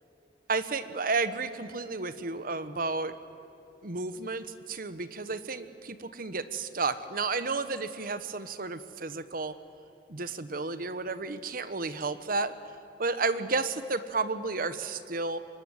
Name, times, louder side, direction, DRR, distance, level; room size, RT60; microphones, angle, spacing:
voice 1, 0.5-3.1 3.8-9.5 10.1-12.5 13.0-15.4, right 3 dB, 50° right, 12 dB, 1.1 m, -32 dB
26.0 x 21.5 x 9.7 m, 2.8 s
head